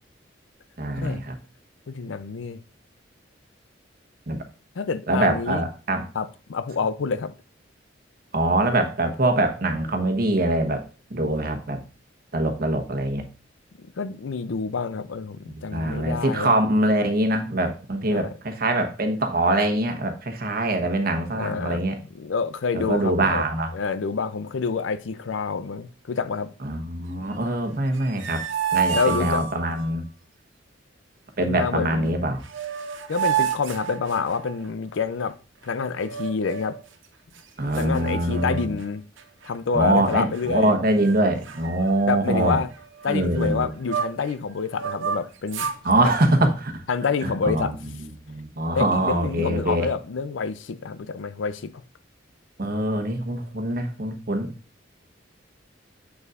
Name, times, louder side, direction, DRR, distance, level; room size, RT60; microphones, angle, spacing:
voice 1, 0.8-1.3 4.3-4.4 5.1-6.0 8.3-10.8 11.1-11.8 12.3-13.3 15.5-22.0 22.7-23.7 26.6-28.4 28.7-30.0 31.4-32.4 37.6-38.7 39.7-42.6 43.1-43.7 45.8-46.8 47.2-47.7 48.0-49.9 52.6-54.5, right 1 dB, 50° right, 1.0 m, -23 dB
voice 2, 1.9-2.6 4.8-5.6 6.1-7.3 13.8-16.6 18.1-18.3 21.3-21.9 22.1-23.4 23.7-26.5 28.9-29.4 31.4-32.3 33.1-35.4 35.6-36.8 37.8-39.0 39.4-40.7 42.1-42.7 43.0-45.7 46.0-46.1 46.9-47.8 48.7-51.8, left 5 dB, 90° left, 0.5 m, -27 dB
sound 1, 27.9-29.9 32.1-32.2 32.4-34.7 36.0-36.8 37.4-37.5 37.7-38.9 39.2-39.5 40.1-40.7 41.0-41.2 41.4-44.3 44.7-45.8, right 7 dB, 85° right, 0.7 m, -30 dB
7.0 x 6.7 x 2.5 m
head